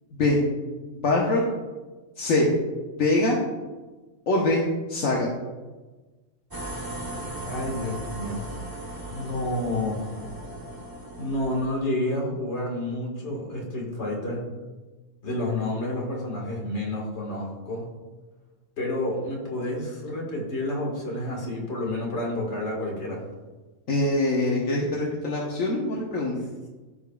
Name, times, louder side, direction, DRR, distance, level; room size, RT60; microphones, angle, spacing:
voice 1, 0.9-1.4 2.2-2.5 3.0-3.4 4.3-4.6 4.9-5.3 23.9-26.4, left 2 dB, 70° left, -3 dB, 1.4 m, -23 dB
sound 1, 6.5-11.7, right 1 dB, 20° right, 0.9 m, -37 dB
voice 2, 7.4-8.4 9.1-10.0 11.2-14.4 15.2-17.8 18.8-23.2, left 1 dB, 55° left, -2 dB, 2.0 m, -29 dB
15.0 x 5.0 x 2.3 m, 1.3 s
omnidirectional pair, 1.4 m